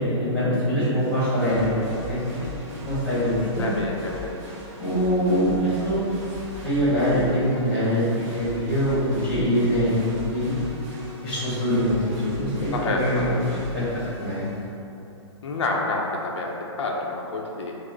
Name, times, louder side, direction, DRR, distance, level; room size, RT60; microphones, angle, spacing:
voice 1, 0.0-2.2 2.8-3.7 4.8-6.0 6.6-10.0 10.3-10.5 11.2-14.5, equal, 10° left, -10 dB, 0.9 m, -23 dB
sound 1, 1.0-14.7, left 2 dB, 30° right, 0.9 m, -40 dB
voice 2, 3.4-4.3 12.7-13.4 15.4-17.8, left 2 dB, 70° left, -1 dB, 0.6 m, -28 dB
4.7 x 2.0 x 4.5 m, 2.8 s
hypercardioid pair, 175°, 15 cm